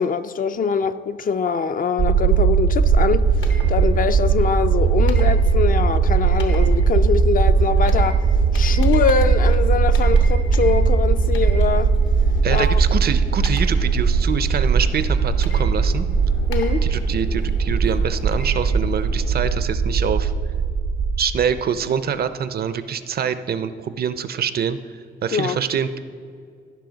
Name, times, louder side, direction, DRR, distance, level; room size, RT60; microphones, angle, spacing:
voice 1, 0.0-3.3 3.7-8.3 8.5-11.9 12.5-12.8 16.5-16.9 25.3-25.6, left 6 dB, 45° left, 0.4 m, -23 dB
sound 1, 2.0-21.2, right 5 dB, 80° right, 1.0 m, -19 dB
sound 2, 2.8-19.3, left 2 dB, 75° left, 1.2 m, -39 dB
voice 2, 12.4-16.0 16.8-20.3 21.2-24.8 25.2-26.0, right 7 dB, 55° right, 0.5 m, -25 dB
15.5 x 5.6 x 3.9 m
cardioid pair, 85°, 19 cm